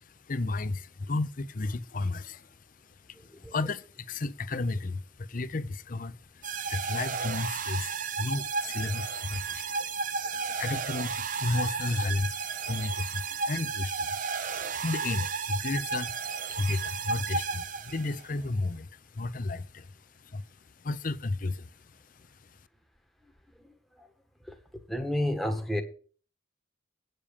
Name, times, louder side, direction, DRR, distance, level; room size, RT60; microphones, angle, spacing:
voice 1, 0.0-2.6 3.1-9.9 10.6-14.2 14.8-16.2 16.5-19.9 20.2-20.4 20.8-21.7 22.5-22.6, left 2 dB, 40° left, 0.6 m, -33 dB
voice 2, 3.3-3.6 8.6-8.9 9.8-9.9 10.2-10.6 23.6-24.1 24.4-24.6 24.9-25.8, left 1 dB, ahead, 1.1 m, -33 dB
sound 1, 6.4-18.2, right 5 dB, 40° right, 0.5 m, -33 dB
8.8 x 6.7 x 7.1 m
head